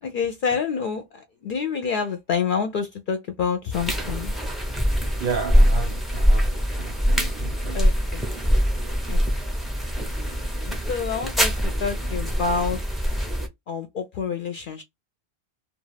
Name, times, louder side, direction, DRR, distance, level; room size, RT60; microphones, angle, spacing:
voice 1, 0.0-4.3 7.7-8.3 9.1-9.2 10.7-11.5 11.8-12.8 13.7-14.8, left 6 dB, 60° left, 0.6 m, -27 dB
sound 1, 3.7-13.5, equal, ahead, 0.5 m, -23 dB
voice 2, 5.2-6.5 6.8-7.8, right 5 dB, 65° right, 0.7 m, -32 dB
2.3 x 2.3 x 3.1 m
omnidirectional pair, 1.1 m